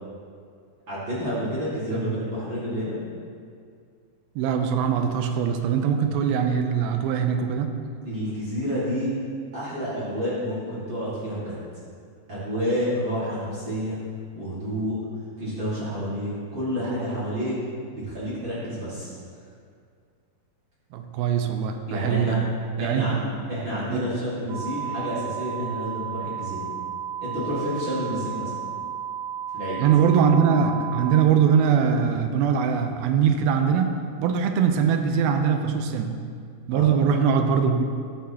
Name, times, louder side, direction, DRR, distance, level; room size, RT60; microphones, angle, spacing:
voice 1, 0.9-3.0 8.0-9.1 9.5-11.6 12.3-14.0 14.3-15.0 15.4-19.1 21.9-22.4 22.8-23.2 23.5-26.7 27.2-28.5 29.5-29.8 36.7-36.9, equal, 40° right, -10 dB, 1.8 m, -29 dB
voice 2, 1.9-2.2 4.4-7.7 20.9-22.4 22.8-23.2 23.9-24.0 29.8-36.1 36.7-37.8, right 7 dB, 90° right, 6 dB, 2.5 m, -22 dB
sound 1, 24.5-31.2, right 8 dB, 70° right, 2.9 m, -33 dB
14.0 x 6.1 x 2.8 m, 2.2 s
omnidirectional pair, 4.3 m